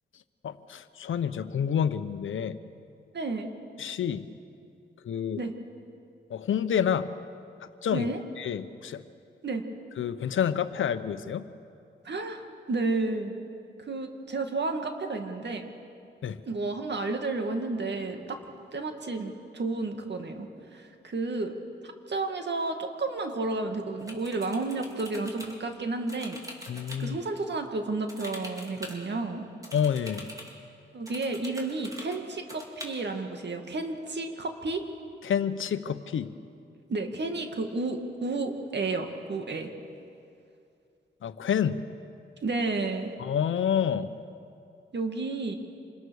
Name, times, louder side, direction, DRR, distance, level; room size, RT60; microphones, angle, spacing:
voice 1, 0.4-2.6 3.8-4.3 5.0-5.4 6.3-7.1 7.6-8.1 8.4-9.0 10.0-11.5 16.2-16.4 26.7-27.2 29.7-30.3 35.2-36.3 41.2-41.8 43.2-44.1, left 8 dB, 90° left, 11 dB, 0.9 m, -28 dB
voice 2, 3.1-3.5 5.4-5.5 7.9-8.2 9.4-9.6 12.0-12.4 12.7-13.3 13.8-15.7 16.5-18.4 18.7-21.6 21.8-26.4 27.0-29.4 30.9-34.8 36.9-39.7 42.4-43.1 44.9-45.6, right 3 dB, 60° right, 5 dB, 2.3 m, -31 dB
sound 1, 24.0-25.5 26.1-27.0 28.1-29.0 29.6-30.5 31.1-32.2 32.5-32.9, equal, 20° right, 4.5 m, -43 dB
26.5 x 21.0 x 6.5 m, 2.5 s
cardioid pair, 65°, 20 cm